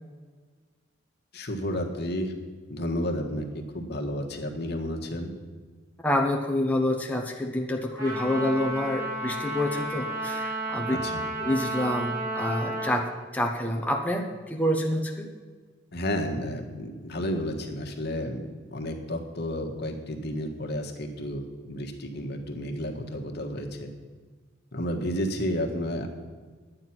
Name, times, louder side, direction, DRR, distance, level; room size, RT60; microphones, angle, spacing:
voice 1, 1.3-2.3 2.7-3.5 3.7-5.3 11.0-11.2 15.9-18.4 18.7-21.4 21.7-23.9 24.7-26.1, equal, 60° left, 3 dB, 1.5 m, -31 dB
voice 2, 6.0-11.0 11.4-15.3, left 1 dB, 10° left, 1 dB, 0.8 m, -27 dB
Trumpet, 8.0-13.0, right 1 dB, 55° right, 3.8 m, -32 dB
11.5 x 9.2 x 6.0 m, 1.5 s
head